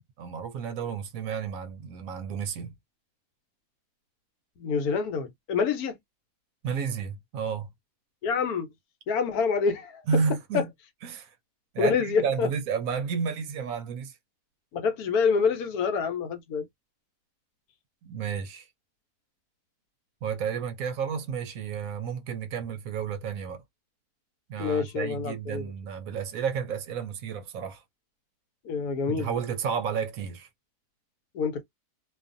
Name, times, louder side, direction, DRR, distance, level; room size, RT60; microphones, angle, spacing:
voice 1, 0.2-2.7 6.6-7.7 10.1-10.7 11.0-11.3 11.7-14.2 18.0-18.7 20.2-23.6 24.5-27.8 29.1-30.5, right 6 dB, 70° right, 0.9 m, -31 dB
voice 2, 4.6-6.0 8.2-8.7 9.1-10.0 10.5-10.6 11.8-12.5 14.7-16.7 24.6-25.7 28.6-29.3 31.3-31.6, left 5 dB, 75° left, 1.2 m, -27 dB
2.6 x 2.4 x 2.5 m
omnidirectional pair, 1.6 m